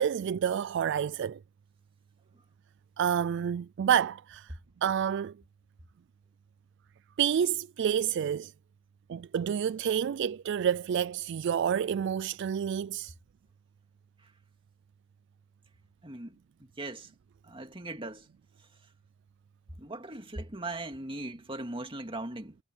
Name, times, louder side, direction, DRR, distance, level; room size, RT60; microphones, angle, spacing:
voice 1, 0.0-1.4 3.0-4.5 4.8-5.3 7.2-8.5 9.1-13.1, right 8 dB, 55° right, 0.3 m, -29 dB
voice 2, 16.0-17.1 17.4-18.3 19.8-22.6, right 2 dB, 25° right, 2.2 m, -39 dB
head